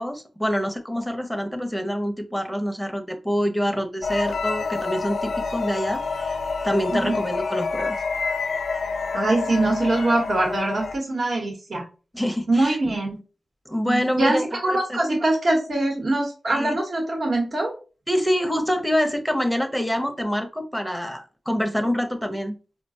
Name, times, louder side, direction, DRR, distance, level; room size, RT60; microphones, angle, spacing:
voice 1, 0.0-6.4 6.6-8.0 12.1-12.8 13.7-15.0 16.5-16.8 18.1-22.6, equal, ahead, 6 dB, 0.6 m, -26 dB
sound 1, 4.0-11.0, left 4 dB, 70° left, 0.3 m, -28 dB
voice 2, 9.1-11.8 12.5-13.2 13.8-17.8, right 2 dB, 60° right, 0 dB, 1.0 m, -23 dB
4.8 x 2.1 x 2.6 m, 0.34 s
wide cardioid pair, 80°, 0 cm